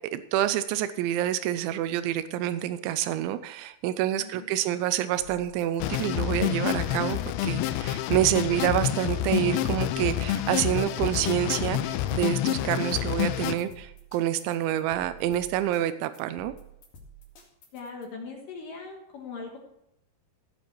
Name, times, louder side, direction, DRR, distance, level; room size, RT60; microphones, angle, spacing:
voice 1, 0.1-16.5, right 12 dB, 85° right, 12 dB, 2.6 m, -27 dB
sound 1, 5.2-18.0, right 2 dB, 50° left, 3.3 m, -50 dB
sound 2, 5.8-13.6, left 12 dB, 85° left, 3.3 m, -28 dB
voice 2, 17.7-19.6, left 4 dB, 70° left, 1 dB, 2.1 m, -40 dB
16.0 x 7.2 x 4.6 m, 0.80 s
omnidirectional pair, 6.0 m